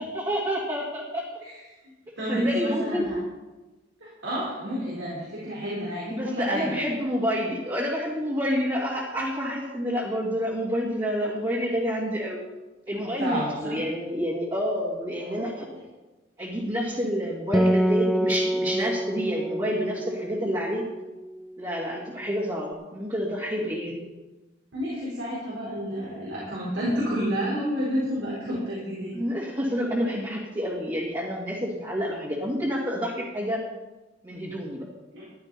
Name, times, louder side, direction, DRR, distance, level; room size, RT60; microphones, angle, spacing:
voice 1, 0.0-1.2 2.3-3.1 6.1-12.4 12.9-15.7 16.4-20.8 21.6-24.0 29.1-33.6 34.2-34.8, equal, 20° right, -5 dB, 2.3 m, -28 dB
voice 2, 2.2-3.1 4.0-6.8 13.2-13.8 15.2-15.5 24.7-29.2 35.1-35.3, equal, 85° right, -7 dB, 4.4 m, -30 dB
Acoustic guitar, 17.5-21.3, right 1 dB, ahead, 0.4 m, -26 dB
15.0 x 11.5 x 4.1 m, 1.1 s
head